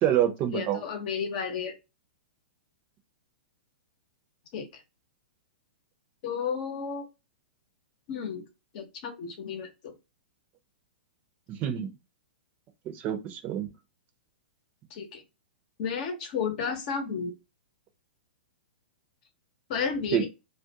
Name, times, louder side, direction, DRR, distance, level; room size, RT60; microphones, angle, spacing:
voice 1, 0.0-0.8 11.5-11.9 12.9-13.7 20.1-20.3, right 10 dB, 35° right, 0.6 m, -27 dB
voice 2, 0.5-1.7 4.5-4.8 6.2-7.1 8.1-8.4 8.7-9.9 14.9-15.2 15.8-17.3 19.7-20.3, left 6 dB, 50° left, 0.8 m, -32 dB
2.4 x 2.1 x 2.8 m
hypercardioid pair, 120°, 6 cm